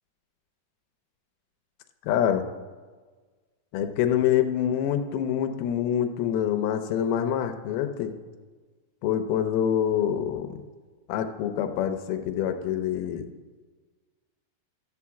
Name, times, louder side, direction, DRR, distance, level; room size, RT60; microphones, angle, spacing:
voice 1, 2.0-2.5 3.7-8.1 9.0-10.6 11.1-13.3, left 9 dB, 85° left, 7 dB, 2.6 m, -26 dB
13.0 x 4.7 x 7.1 m, 1.4 s
omnidirectional pair, 4.3 m